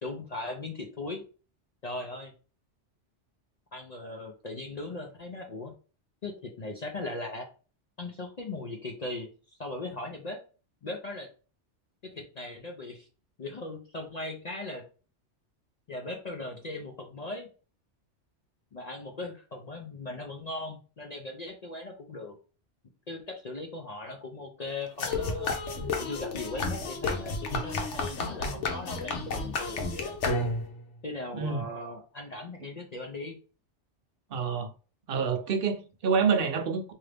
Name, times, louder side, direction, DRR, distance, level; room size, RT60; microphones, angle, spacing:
voice 1, 0.0-1.2 1.8-2.3 3.7-5.7 6.2-7.5 8.0-9.3 9.6-10.4 10.8-11.3 12.0-13.1 13.4-14.8 15.9-17.5 18.7-22.4 23.1-25.5 26.0-30.1 31.0-33.4, left 2 dB, 50° left, 0.5 m, -38 dB
sound 1, 25.0-30.8, left 3 dB, 75° left, 1.1 m, -31 dB
voice 2, 31.3-31.7 34.3-34.7 35.1-36.9, right 6 dB, 55° right, 0.8 m, -27 dB
3.7 x 2.8 x 3.3 m
omnidirectional pair, 1.2 m